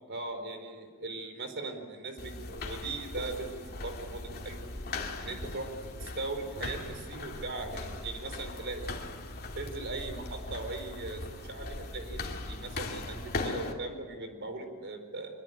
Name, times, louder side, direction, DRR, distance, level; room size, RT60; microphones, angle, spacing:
voice 1, 0.1-4.6 5.2-9.0 9.6-15.3, right 3 dB, 55° right, 6 dB, 4.3 m, -39 dB
sound 1, 2.2-13.7, left 2 dB, 45° left, 2.9 m, -39 dB
24.5 x 22.5 x 9.1 m, 1.5 s
head